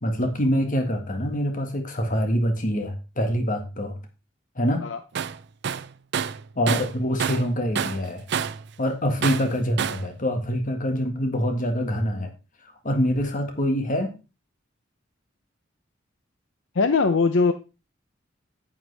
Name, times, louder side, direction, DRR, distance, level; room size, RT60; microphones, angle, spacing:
voice 1, 0.0-4.0 4.5-4.8 6.5-8.2 8.8-12.3 12.8-14.1, equal, 45° left, 5 dB, 1.7 m, -25 dB
Tools, 5.2-5.4 5.6-7.5 7.8-8.7 9.2-10.1, right 7 dB, 60° right, 0.5 m, -28 dB
voice 2, 16.7-17.5, left 4 dB, 80° left, 9 dB, 0.7 m, -20 dB
9.4 x 9.1 x 3.4 m, 0.29 s
head